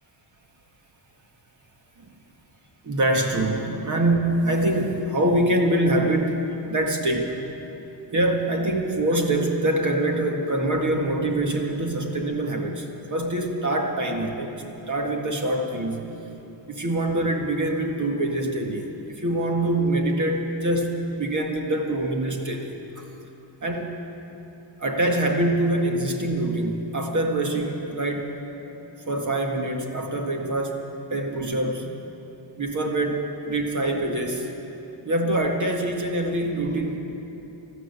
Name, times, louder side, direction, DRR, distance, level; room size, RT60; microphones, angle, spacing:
voice 1, 2.8-6.4 6.7-7.4 8.1-14.5 14.9-16.1 16.7-23.0 23.6-23.9 24.8-28.4 29.1-31.9 32.6-34.5 35.1-37.0, right 1 dB, 40° right, 2 dB, 1.8 m, -24 dB
13.0 x 13.0 x 8.3 m, 3.0 s
cardioid pair, 90°, 46 cm